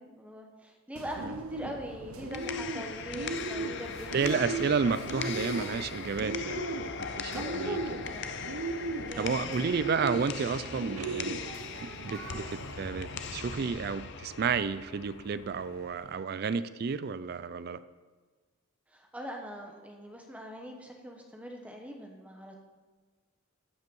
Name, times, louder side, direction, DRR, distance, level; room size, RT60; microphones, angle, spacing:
voice 1, 0.0-4.5 7.3-8.3 9.1-9.6 10.7-11.0 18.9-22.6, equal, 5° right, 2 dB, 0.9 m, -42 dB
Bird, 1.0-13.7, right 2 dB, 90° right, 0.7 m, -38 dB
sound 1, 2.1-16.1, left 6 dB, 55° left, 0.6 m, -40 dB
voice 2, 4.1-6.6 7.0-7.8 9.2-11.4 11.8-17.8, right 5 dB, 50° right, 15 dB, 0.3 m, -31 dB
14.0 x 5.4 x 5.4 m, 1.3 s
head